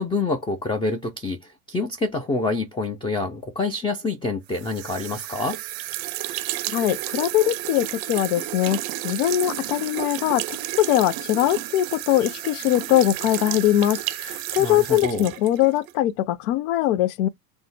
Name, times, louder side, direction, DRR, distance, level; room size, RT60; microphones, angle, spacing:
voice 1, 0.0-5.6 14.6-15.3, left 3 dB, 10° left, 0.5 m, -27 dB
sound 1, 4.5-16.0, right 15 dB, 50° right, 0.6 m, -32 dB
voice 2, 6.7-17.3, left 13 dB, 60° left, 0.5 m, -22 dB
3.4 x 2.0 x 3.2 m
figure-of-eight pair, 70°, 49 cm